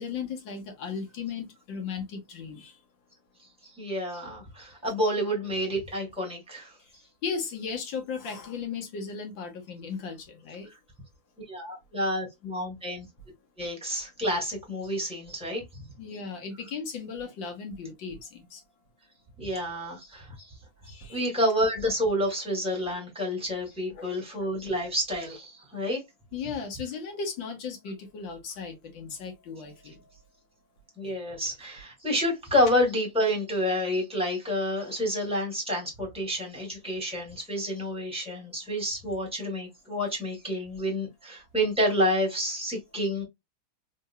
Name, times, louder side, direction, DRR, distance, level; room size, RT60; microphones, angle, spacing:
voice 1, 0.0-2.8 7.2-10.7 16.0-18.6 20.8-21.2 23.9-24.1 24.4-24.5 26.3-30.0 31.4-31.5, left 5 dB, 65° left, 1.9 m, -36 dB
voice 2, 3.6-6.7 11.4-13.1 13.6-15.6 19.4-20.5 20.9-26.0 31.0-43.2, equal, 5° right, 2.1 m, -29 dB
3.8 x 3.6 x 2.2 m
omnidirectional pair, 2.3 m